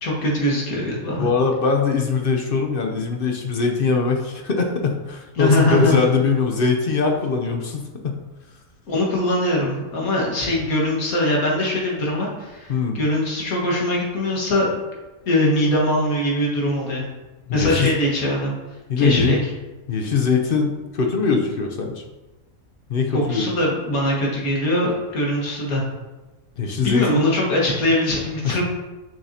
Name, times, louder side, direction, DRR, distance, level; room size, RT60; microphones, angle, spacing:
voice 1, 0.0-1.3 5.4-5.9 8.9-14.7 15.3-17.1 17.5-18.5 19.0-19.4 23.1-25.9 26.8-28.6, left 1 dB, 75° left, -3 dB, 2.0 m, -22 dB
voice 2, 1.2-8.2 12.7-13.0 17.5-17.9 18.9-19.4 19.9-22.0 22.9-23.5 26.6-27.3 28.4-28.6, left 5 dB, 50° left, 3 dB, 0.7 m, -21 dB
6.4 x 6.1 x 2.8 m, 1.1 s
omnidirectional pair, 1.5 m